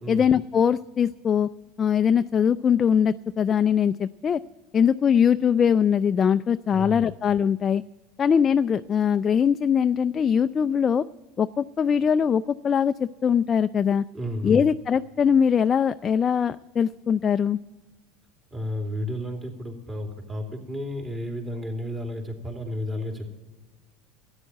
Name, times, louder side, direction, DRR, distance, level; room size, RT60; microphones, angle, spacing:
voice 1, 0.1-1.5 1.8-4.4 4.7-7.8 8.2-11.0 11.4-14.0 14.4-17.6, left 7 dB, 30° left, 10 dB, 0.4 m, -22 dB
voice 2, 6.7-7.0 14.1-14.6 18.5-23.3, left 1 dB, 20° right, 2 dB, 3.1 m, -32 dB
13.0 x 9.7 x 9.1 m, 1.2 s
supercardioid pair, 120°, 0 cm